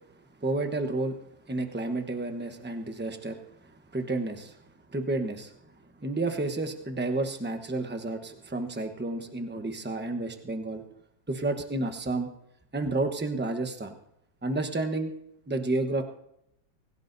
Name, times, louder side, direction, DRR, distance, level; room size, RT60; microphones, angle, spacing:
voice 1, 0.4-1.2 1.5-4.6 4.9-5.5 6.0-10.8 11.3-12.3 12.7-13.9 14.4-15.1 15.5-16.0, right 2 dB, 10° right, 6 dB, 0.6 m, -31 dB
25.0 x 16.5 x 2.7 m, 0.80 s
omnidirectional pair, 2.0 m